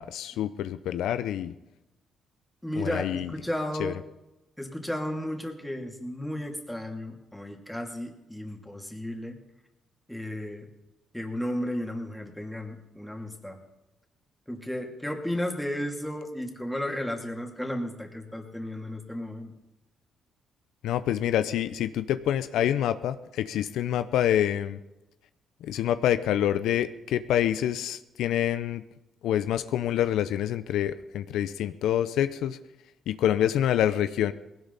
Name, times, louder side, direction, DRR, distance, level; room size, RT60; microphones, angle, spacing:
voice 1, 0.0-1.5 2.8-3.3 3.8-3.9 20.8-24.8 25.6-28.8 29.2-32.6 33.1-34.3, left 11 dB, 85° left, 12 dB, 0.6 m, -26 dB
voice 2, 2.6-4.0 4.6-9.4 10.1-10.7 11.1-13.6 14.5-19.5, left 1 dB, 5° left, 2 dB, 2.7 m, -34 dB
19.0 x 17.0 x 4.1 m, 0.97 s
cardioid pair, 90°, 0 cm